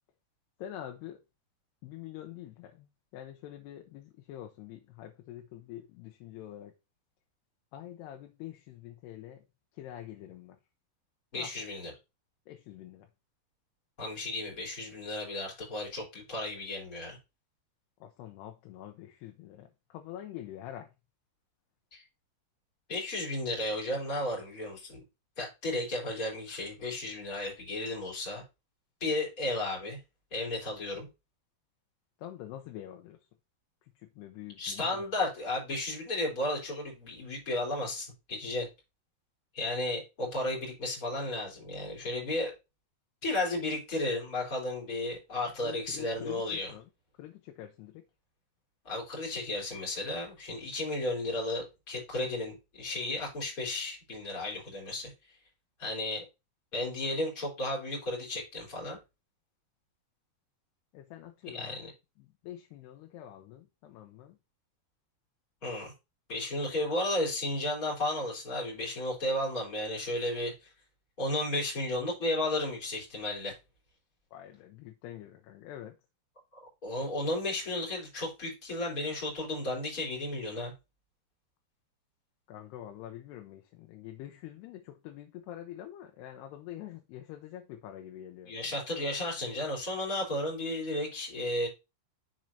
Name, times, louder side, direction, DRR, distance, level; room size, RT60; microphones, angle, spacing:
voice 1, 0.6-1.2 1.8-6.7 7.7-9.4 9.7-10.6 11.3-11.5 12.5-13.1 18.0-20.9 32.2-33.2 34.0-35.1 45.6-46.9 47.2-48.0 60.9-61.9 62.2-64.4 74.3-76.0 82.5-88.5, left 12 dB, 85° left, 2.9 m, -46 dB
voice 2, 11.3-11.9 14.0-17.2 21.9-22.0 22.9-25.0 25.4-28.4 29.0-30.0 30.3-31.1 34.6-38.7 39.5-42.5 43.2-46.7 48.8-55.1 55.8-56.2 56.7-59.0 61.5-61.9 65.6-65.9 66.3-70.7 71.2-73.6 76.6-80.7 88.4-91.7, left 1 dB, 20° left, 3.8 m, -33 dB
7.5 x 6.5 x 2.8 m
omnidirectional pair, 4.7 m